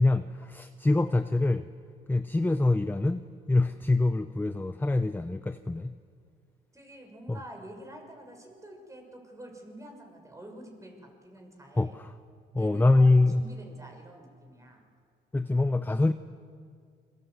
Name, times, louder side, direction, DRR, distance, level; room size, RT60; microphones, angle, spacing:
voice 1, 0.0-1.7 2.1-3.2 3.5-5.9 7.3-7.4 11.8-12.1 12.5-13.4 15.3-16.1, left 2 dB, 10° left, 10 dB, 0.8 m, -24 dB
voice 2, 6.7-11.9 12.6-14.8, right 1 dB, 15° right, 3 dB, 6.3 m, -47 dB
28.5 x 23.5 x 8.0 m, 2.2 s
cardioid pair, 90°, 20 cm